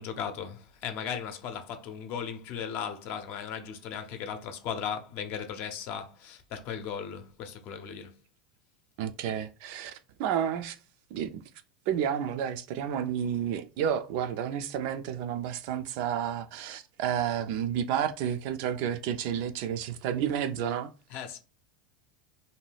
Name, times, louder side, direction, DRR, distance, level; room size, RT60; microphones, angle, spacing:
voice 1, 0.0-8.1 21.1-21.4, left 7 dB, 50° left, 0.6 m, -37 dB
voice 2, 9.0-10.8 11.1-11.4 11.9-20.9, right 9 dB, 60° right, 0.4 m, -31 dB
2.7 x 2.2 x 3.2 m
hypercardioid pair, 110°, 4 cm